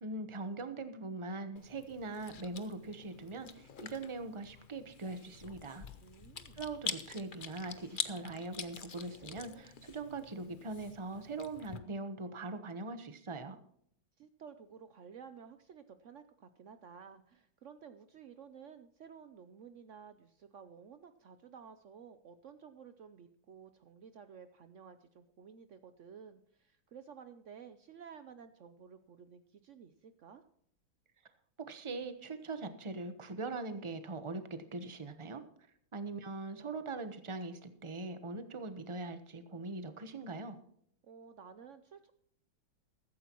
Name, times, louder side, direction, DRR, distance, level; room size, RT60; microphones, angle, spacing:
voice 1, 0.0-5.9 6.5-13.6 31.6-35.4 35.9-40.6, right 3 dB, 25° right, 9 dB, 0.7 m, -41 dB
Chewing mastication, 1.6-11.8, left 6 dB, 85° left, 0.4 m, -46 dB
voice 2, 6.0-6.6 14.2-30.4 41.0-42.1, right 7 dB, 85° right, 10 dB, 0.6 m, -53 dB
15.0 x 13.5 x 3.0 m, 0.68 s
omnidirectional pair, 2.2 m